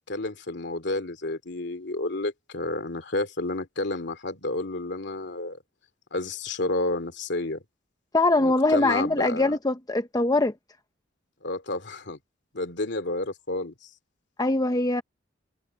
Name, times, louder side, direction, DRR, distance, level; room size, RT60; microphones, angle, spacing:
voice 1, 0.1-5.6 6.1-7.6 8.4-9.5 11.4-12.2 12.5-13.7, left 2 dB, 65° left, 2.6 m, -30 dB
voice 2, 8.1-10.5 14.4-15.0, left 2 dB, 20° left, 0.8 m, -22 dB
head